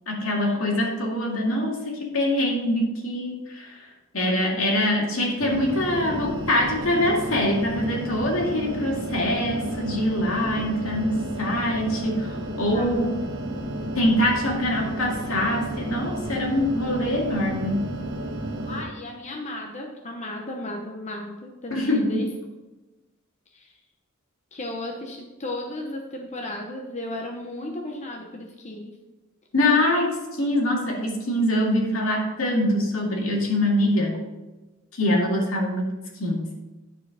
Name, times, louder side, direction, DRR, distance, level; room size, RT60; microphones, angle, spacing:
voice 1, 0.1-3.9 4.1-13.3 13.9-17.9 21.7-22.2 29.5-34.2 34.9-36.5, left 1 dB, 80° left, -1 dB, 2.1 m, -24 dB
sound 1, 5.4-18.8, right 1 dB, 65° right, 1.3 m, -32 dB
voice 2, 18.7-22.3 23.5-23.8 24.5-29.0, left 1 dB, 35° left, 1 dB, 0.9 m, -35 dB
10.5 x 4.6 x 4.9 m, 1.1 s
head